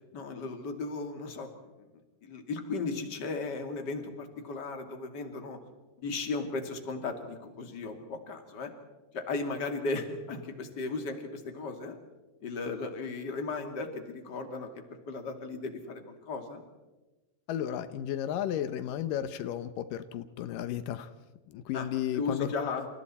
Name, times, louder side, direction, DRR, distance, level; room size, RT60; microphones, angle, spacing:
voice 1, 0.1-1.5 1.8-1.9 2.2-5.6 6.0-8.7 9.1-12.0 12.4-14.7 15.1-16.6 21.7-21.9 22.1-22.9, left 3 dB, 30° left, 5 dB, 2.1 m, -36 dB
voice 2, 17.5-21.1 21.5-22.5, left 10 dB, 90° left, 11 dB, 1.9 m, -33 dB
29.5 x 28.5 x 4.3 m, 1.1 s
omnidirectional pair, 5.1 m